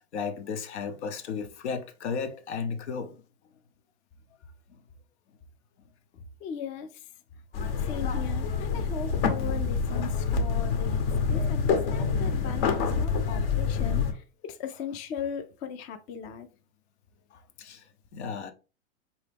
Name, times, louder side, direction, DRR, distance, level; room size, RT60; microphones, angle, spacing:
voice 1, 0.1-3.2 17.6-17.8 18.1-18.5, left 5 dB, 80° left, 0.9 m, -34 dB
voice 2, 6.4-6.9 7.9-11.0 11.3-16.5, left 7 dB, 25° left, 0.4 m, -38 dB
sound 1, 7.5-14.1, left 5 dB, 60° left, 1.0 m, -27 dB
4.6 x 2.9 x 3.4 m
supercardioid pair, 145°, 33 cm